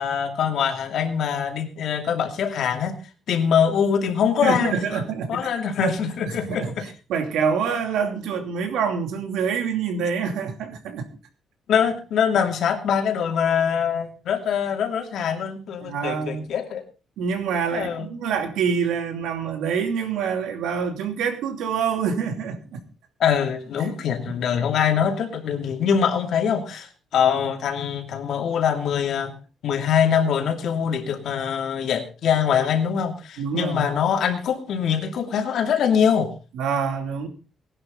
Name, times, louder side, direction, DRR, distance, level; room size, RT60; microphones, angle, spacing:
voice 1, 0.0-3.0 3.3-4.7 5.3-6.9 11.7-16.8 17.7-18.1 23.2-29.3 29.6-36.3, left 7 dB, 55° left, 4 dB, 2.6 m, -23 dB
voice 2, 4.4-5.5 5.8-5.9 6.3-11.1 15.8-16.5 17.2-22.8 23.8-23.9 24.3-24.4 33.4-33.9 36.6-37.3, right 6 dB, 85° right, 6 dB, 2.8 m, -26 dB
18.5 x 11.0 x 3.8 m, 0.32 s
cardioid pair, 180°, 0 cm